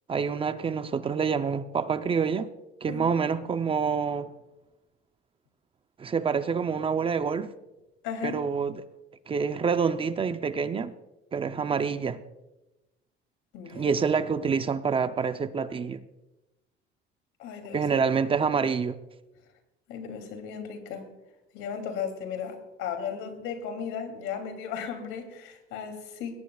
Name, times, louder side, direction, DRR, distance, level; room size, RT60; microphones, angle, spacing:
voice 1, 0.1-2.5 2.8-4.3 6.0-7.5 8.2-8.8 9.3-11.0 11.3-12.2 13.7-16.0 17.7-19.0, right 6 dB, 25° right, 11 dB, 0.6 m, -27 dB
voice 2, 8.0-8.4 13.5-13.9 17.4-17.9 19.9-21.1 21.5-26.4, left 7 dB, 85° left, 5 dB, 2.9 m, -35 dB
20.5 x 17.5 x 2.3 m, 1.0 s
cardioid pair, 140°, 21 cm